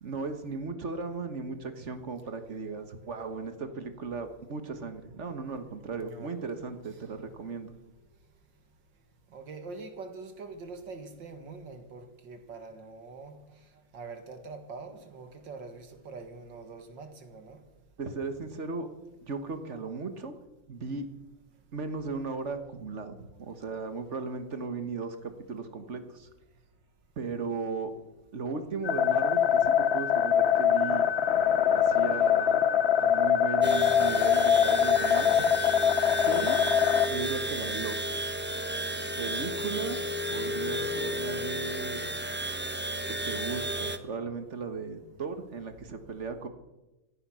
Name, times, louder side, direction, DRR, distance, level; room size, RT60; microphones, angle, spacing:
voice 1, 0.0-7.7 18.0-18.9 19.2-20.3 20.7-21.1 21.7-26.3 27.2-27.9 28.3-31.1 31.7-32.7 33.0-35.5 36.1-36.6 37.1-38.0 39.2-40.0 40.3-42.0 43.1-46.5, right 4 dB, 40° right, 1.4 m, -36 dB
voice 2, 6.0-6.4 9.3-13.3 13.9-17.6, right 4 dB, 70° right, 2.5 m, -44 dB
sound 1, 28.8-37.1, left 9 dB, 55° left, 0.7 m, -23 dB
sound 2, 33.6-44.0, right 1 dB, 15° right, 0.4 m, -33 dB
16.0 x 14.5 x 6.2 m
omnidirectional pair, 2.1 m